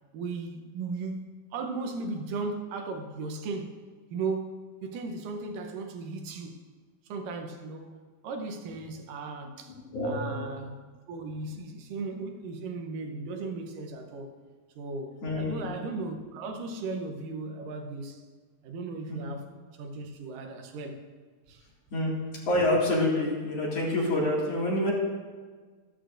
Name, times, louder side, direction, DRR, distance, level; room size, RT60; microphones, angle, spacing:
voice 1, 0.1-3.8 4.1-4.6 4.8-6.6 7.1-8.0 8.2-9.8 10.0-10.8 11.1-14.4 14.8-18.2 18.6-19.5 19.8-21.0 21.5-21.6, right 3 dB, 85° right, 2.6 m, -36 dB
voice 2, 9.7-10.4 15.2-15.6 19.1-19.2 21.9-22.1 22.5-24.9, left 1 dB, 50° left, 3.1 m, -27 dB
14.0 x 13.0 x 2.6 m
omnidirectional pair, 3.8 m